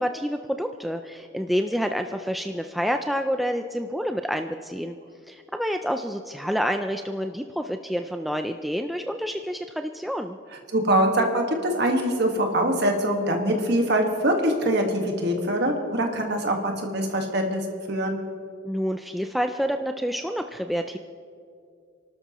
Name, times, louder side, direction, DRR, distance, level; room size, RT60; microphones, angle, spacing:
voice 1, 0.0-5.0 5.3-10.4 18.6-21.0, equal, ahead, 5 dB, 0.3 m, -28 dB
voice 2, 10.7-17.6 17.9-18.2, right 1 dB, 55° right, 3 dB, 1.6 m, -23 dB
29.5 x 12.5 x 3.0 m, 2.3 s
head